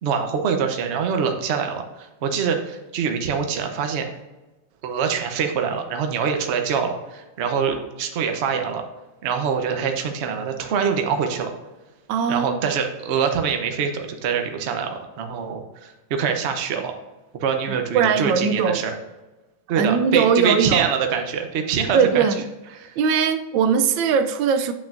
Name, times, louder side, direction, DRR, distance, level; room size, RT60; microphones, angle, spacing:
voice 1, 0.0-4.1 4.8-8.8 9.2-11.5 12.3-16.9 17.3-18.9 19.7-22.2 22.7-23.0, right 6 dB, 55° right, 5 dB, 0.8 m, -24 dB
voice 2, 12.1-12.5 17.7-18.8 19.8-20.9 21.9-22.5 23.0-24.7, right 6 dB, 85° right, 9 dB, 1.3 m, -20 dB
8.3 x 6.0 x 2.5 m, 1.1 s
omnidirectional pair, 2.0 m